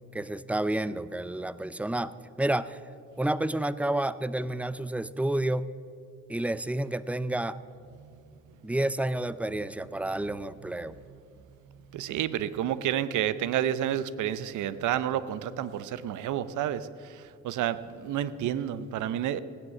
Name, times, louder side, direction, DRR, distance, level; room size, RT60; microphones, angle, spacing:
voice 1, 0.1-2.8 3.2-5.7 6.3-7.6 8.6-11.0, right 1 dB, 5° right, 16 dB, 0.4 m, -30 dB
voice 2, 11.6-19.4, right 11 dB, 80° right, 15 dB, 0.7 m, -30 dB
16.5 x 9.8 x 7.2 m, 2.6 s
cardioid pair, 90°, 30 cm